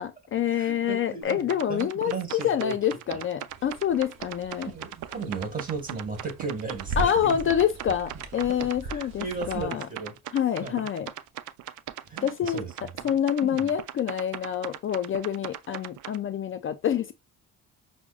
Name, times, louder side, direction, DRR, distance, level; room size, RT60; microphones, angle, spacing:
voice 1, 0.0-4.7 7.0-9.9 10.3-11.1 12.2-12.6 13.0-17.1, left 9 dB, 45° left, 0.4 m, -27 dB
voice 2, 0.5-2.8 3.1-3.2 4.6-7.4 8.6-10.1 10.6-10.9 12.1-12.9 13.5-13.7, right 4 dB, 30° right, 1.7 m, -36 dB
sound 1, 1.2-16.2, right 13 dB, 75° right, 0.5 m, -39 dB
sound 2, 3.5-9.6, right 3 dB, 60° right, 0.8 m, -39 dB
5.9 x 2.1 x 2.4 m
cardioid pair, 90°, 30 cm